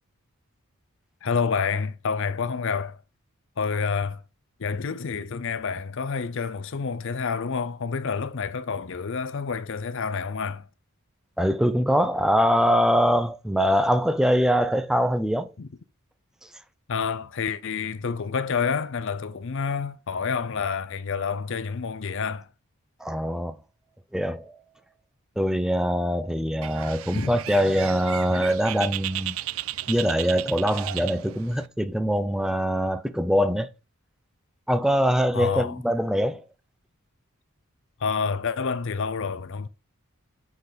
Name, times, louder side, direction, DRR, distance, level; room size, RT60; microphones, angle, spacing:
voice 1, 1.2-3.0 3.6-4.2 4.6-10.7 15.6-15.7 16.9-22.5 27.1-27.3 35.3-35.8 38.0-39.7, left 5 dB, 55° left, 0.5 m, -28 dB
voice 2, 11.4-15.5 23.0-23.6 24.1-24.5 25.4-29.4 29.9-33.7 34.7-36.4, equal, ahead, 0.5 m, -23 dB
Bird, 26.6-31.7, right 14 dB, 65° right, 0.4 m, -35 dB
8.1 x 4.0 x 5.1 m
head